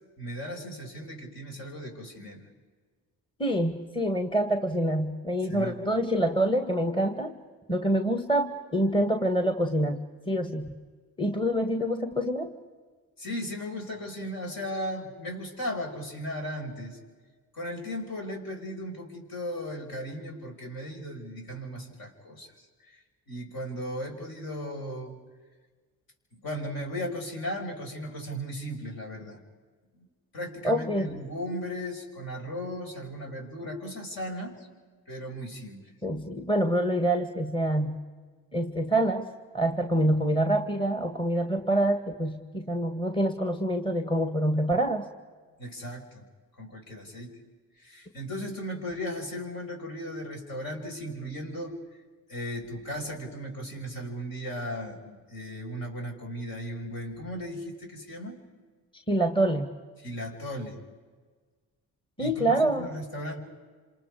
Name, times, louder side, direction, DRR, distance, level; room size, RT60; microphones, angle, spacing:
voice 1, 0.2-2.5 5.5-5.8 13.2-17.0 17.5-25.2 26.3-29.4 29.9-30.1 30.3-34.7 35.1-35.8 45.6-46.2 46.6-47.3 47.8-51.7 52.3-58.4 60.0-60.8 62.2-63.4, equal, 55° left, 1 dB, 5.7 m, -36 dB
voice 2, 3.4-7.4 7.7-10.8 11.2-12.5 30.6-31.1 36.0-38.0 38.5-39.3 39.5-45.1 59.1-59.7 62.2-62.9, right 1 dB, 10° left, 6 dB, 1.8 m, -26 dB
27.5 x 27.5 x 4.9 m, 1.5 s
hypercardioid pair, 50°, 42 cm